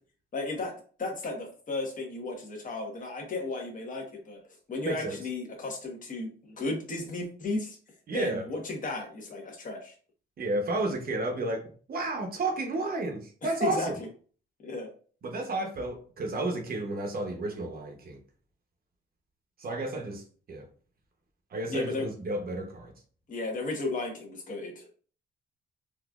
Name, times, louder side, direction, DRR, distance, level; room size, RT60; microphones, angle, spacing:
voice 1, 0.3-0.7 1.0-4.4 4.7-7.8 8.1-9.9 13.6-13.9 14.6-14.9 21.7-22.1 23.3-24.9, left 2 dB, 40° left, 1.1 m, -34 dB
voice 2, 4.8-5.2 8.1-8.4 10.4-14.0 15.2-18.2 19.6-20.7 21.5-22.9, right 2 dB, 50° right, 0.8 m, -32 dB
4.0 x 2.5 x 2.3 m
cardioid pair, 90°, 20 cm